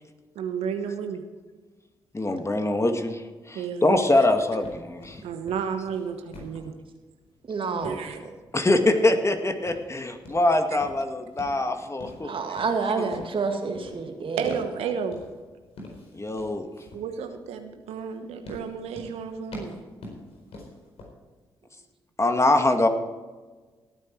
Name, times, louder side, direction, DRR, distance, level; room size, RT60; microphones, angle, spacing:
voice 1, 0.3-1.2 3.5-4.3 5.2-6.7 7.8-8.2 14.4-15.2 16.9-19.8, right 7 dB, 80° right, 6 dB, 1.1 m, -32 dB
voice 2, 2.1-3.2 3.5-5.2 8.5-12.3 16.1-16.7 22.2-22.9, left 2 dB, 25° left, 6 dB, 2.0 m, -23 dB
sound 1, 4.2-21.0, left 1 dB, 70° left, 4.3 m, -47 dB
voice 3, 7.5-8.3 12.2-14.6, right 4 dB, 55° right, 4 dB, 2.3 m, -29 dB
18.0 x 9.3 x 4.6 m, 1.3 s
hypercardioid pair, 40°, 11 cm